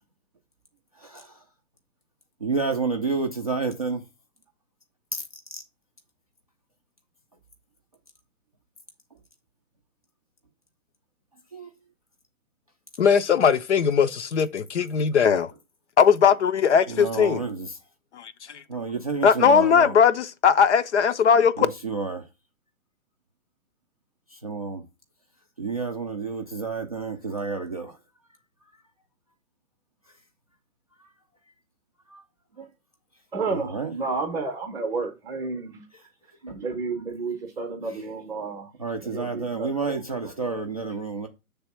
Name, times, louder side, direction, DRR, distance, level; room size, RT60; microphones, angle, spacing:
voice 1, 1.0-1.3 2.4-4.0 11.5-11.7 16.9-17.7 18.7-19.9 21.6-22.2 24.3-24.8 25.6-28.0 32.1-32.2 32.6-32.7 33.5-33.9 36.5-36.6 38.8-41.3, right 4 dB, 30° right, 0.4 m, -30 dB
voice 2, 13.0-15.5 16.0-17.4 18.1-18.6 19.2-21.7, left 7 dB, 50° left, 0.6 m, -19 dB
voice 3, 33.3-35.8 36.4-38.7 39.0-40.6, right 4 dB, 5° right, 0.7 m, -31 dB
6.8 x 3.4 x 5.5 m
hypercardioid pair, 150°, 44 cm